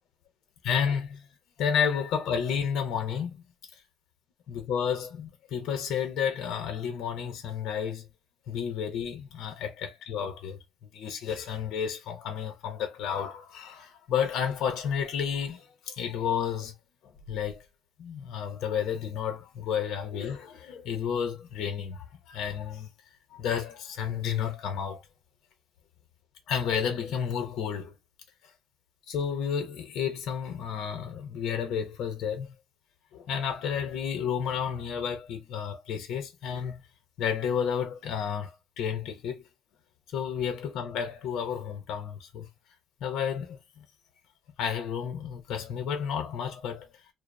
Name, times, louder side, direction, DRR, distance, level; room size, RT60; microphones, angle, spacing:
voice 1, 0.6-1.3 1.6-3.4 4.5-8.1 8.5-16.7 17.0-17.6 18.0-22.9 23.3-25.0 26.5-27.9 29.1-32.6 33.1-36.8 37.2-39.4 40.1-42.5 43.0-43.8 44.6-46.9, left 7 dB, 65° left, 0.8 m, -31 dB
2.6 x 2.0 x 2.6 m
cardioid pair, 130°, 0 cm